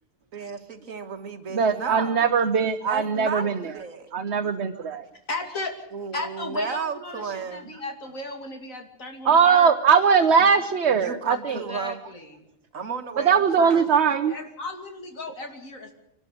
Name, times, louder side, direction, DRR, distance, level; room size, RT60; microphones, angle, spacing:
voice 1, 0.3-2.3 2.9-4.1 5.9-7.7 10.9-12.0 12.7-13.9, right 5 dB, 90° right, 7 dB, 2.0 m, -34 dB
voice 2, 1.5-3.6 4.1-5.1 9.2-11.6 13.2-14.3, right 6 dB, 60° right, 5 dB, 1.2 m, -20 dB
voice 3, 5.3-5.7 6.1-9.7 11.5-12.4 13.9-15.9, left 2 dB, 90° left, 4 dB, 3.1 m, -35 dB
24.5 x 12.5 x 8.7 m, 0.81 s
omnidirectional pair, 1.3 m